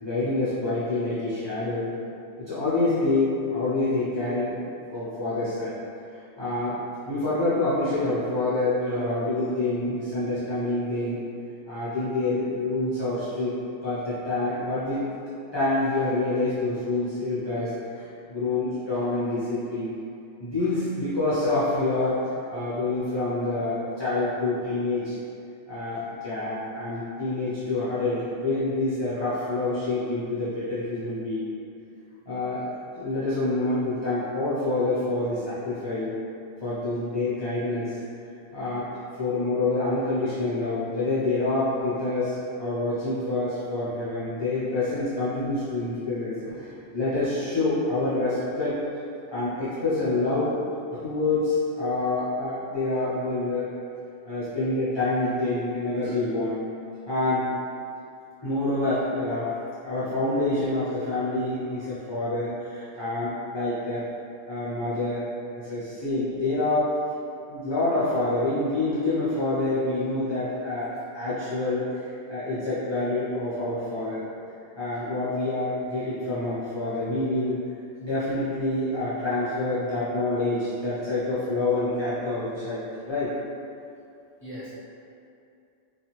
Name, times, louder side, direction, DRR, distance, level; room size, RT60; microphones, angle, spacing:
voice 1, 0.0-1.9 2.4-5.8 6.1-6.8 7.1-11.2 11.7-13.6 13.8-15.0 15.5-19.9 20.4-25.2 25.7-31.5 32.3-32.7 32.9-36.2 36.6-38.0 38.5-38.9 39.2-46.3 46.9-48.8 49.3-50.6 50.9-53.7 54.3-56.6 57.1-57.5 58.4-59.5 59.8-64.1 64.5-65.3 65.5-66.9 67.5-70.9 71.1-72.0 72.3-74.2 74.8-77.6 78.0-83.4, left 2 dB, 30° left, -12 dB, 0.5 m, -27 dB
voice 2, 46.3-47.0 84.4-84.7, equal, 15° right, -12 dB, 0.8 m, -43 dB
2.7 x 2.4 x 2.9 m, 2.6 s
omnidirectional pair, 1.1 m